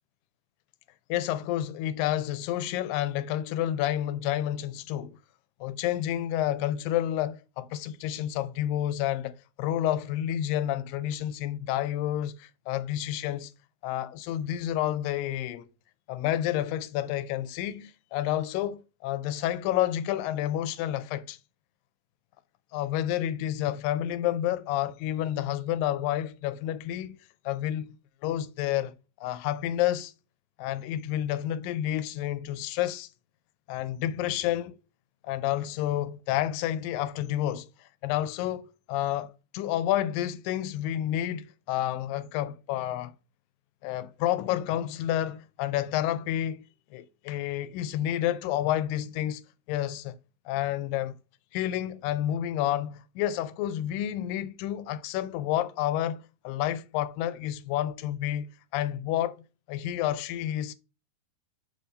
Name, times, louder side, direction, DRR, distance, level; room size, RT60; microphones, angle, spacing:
voice 1, 1.1-5.2 5.6-13.5 13.8-15.7 16.1-21.4 22.7-27.2 27.5-28.0 28.2-28.9 29.2-30.1 30.6-33.1 33.7-34.8 35.2-43.1 43.8-46.6 46.9-49.4 49.7-50.2 50.5-51.2 51.5-60.7, left 12 dB, 85° left, 2.2 m, -30 dB
6.8 x 3.5 x 4.0 m
omnidirectional pair, 4.0 m